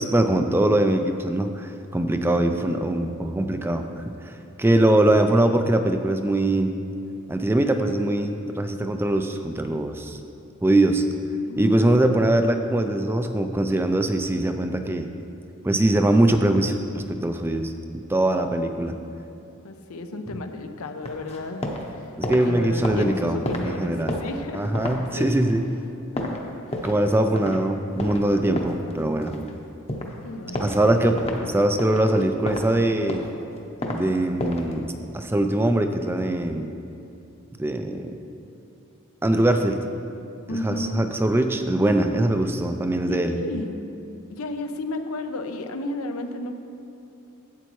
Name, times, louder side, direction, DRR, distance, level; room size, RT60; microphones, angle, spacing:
voice 1, 0.0-4.3 4.6-6.7 7.3-10.2 10.6-11.0 11.6-15.1 15.6-18.9 22.2-23.4 23.6-24.2 24.5-25.6 26.8-29.3 30.6-33.2 33.9-36.7 37.6-38.2 39.2-39.8 40.6-43.4, right 1 dB, 10° right, 6 dB, 0.3 m, -22 dB
voice 2, 11.5-12.1 18.8-19.1 19.6-21.7 22.4-25.4 26.1-26.4 26.8-26.9 30.2-31.0 40.5-41.1 43.1-43.8 44.3-46.5, left 2 dB, 85° left, 6 dB, 0.7 m, -33 dB
sound 1, 21.0-21.9 22.1-27.1 27.4-27.6 28.0-29.5 29.9-30.1 30.5-30.8 31.2-31.4 31.8-32.7 33.0-34.0 34.4-34.7, left 1 dB, 30° left, 0.8 m, -31 dB
12.0 x 8.0 x 3.1 m, 2.7 s
head